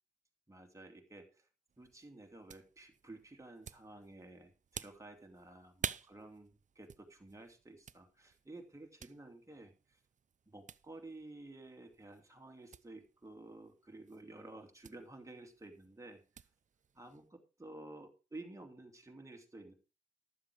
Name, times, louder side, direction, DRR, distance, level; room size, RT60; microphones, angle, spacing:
voice 1, 0.5-1.5 1.8-10.0 10.5-16.2 16.9-19.7, right 2 dB, 15° right, 3 dB, 2.6 m, -53 dB
sound 1, 1.7-17.3, right 7 dB, 40° right, 0.5 m, -51 dB
12.0 x 7.4 x 4.8 m, 0.32 s
cardioid pair, 70°, 21 cm